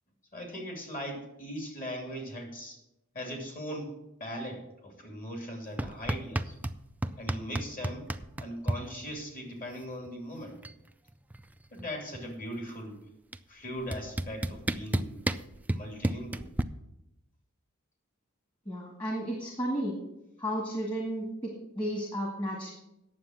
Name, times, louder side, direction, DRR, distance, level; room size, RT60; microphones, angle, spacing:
voice 1, 0.3-2.8 3.1-3.9 4.2-6.5 7.2-8.1 8.4-10.6 11.7-13.0 13.5-15.2 15.7-16.5, equal, 40° left, 2 dB, 2.8 m, -39 dB
sound 1, 5.8-6.8 7.0-8.8 10.1-10.2 10.4-10.8 11.1-12.4 13.3-13.4 13.9-16.6, right 1 dB, 10° right, 0.3 m, -31 dB
voice 2, 18.7-20.0 20.4-22.7, equal, 25° left, -1 dB, 1.9 m, -33 dB
9.5 x 7.4 x 7.4 m, 0.90 s
head